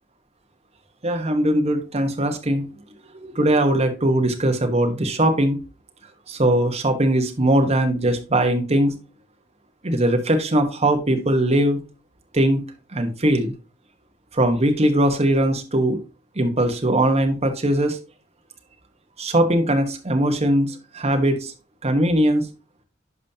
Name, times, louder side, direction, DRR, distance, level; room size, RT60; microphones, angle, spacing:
voice 1, 1.0-2.6 3.1-5.6 6.3-8.9 9.8-11.8 12.3-12.6 12.9-13.5 14.3-16.0 16.4-18.0 19.2-21.5 21.8-22.4, right 1 dB, 30° right, 5 dB, 1.2 m, -20 dB
11.0 x 5.2 x 2.8 m, 0.31 s
head